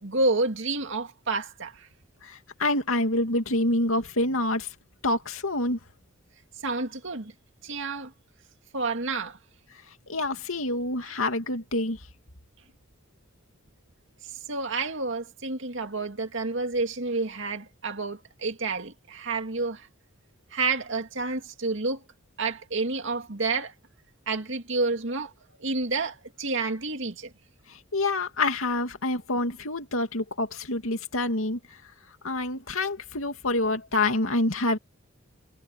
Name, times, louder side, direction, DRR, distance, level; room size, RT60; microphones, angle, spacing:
voice 1, 0.0-1.9 6.6-7.3 7.6-8.1 8.7-9.4 14.2-19.9 20.5-22.0 22.4-23.7 24.3-25.3 25.6-27.3, right 3 dB, 65° right, 2.4 m, -29 dB
voice 2, 2.2-4.7 5.0-5.8 10.1-12.0 27.7-31.6 32.2-34.8, left 2 dB, 80° left, 2.6 m, -27 dB
head